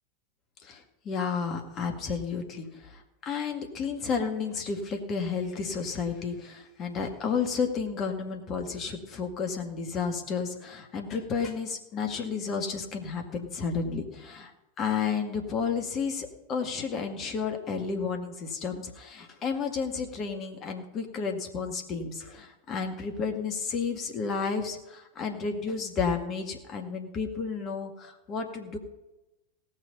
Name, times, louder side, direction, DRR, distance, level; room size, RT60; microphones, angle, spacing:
voice 1, 0.6-14.5 14.8-28.8, left 5 dB, 30° left, 4 dB, 2.1 m, -32 dB
17.5 x 6.6 x 5.5 m, 0.98 s
figure-of-eight pair, 90°, 0 cm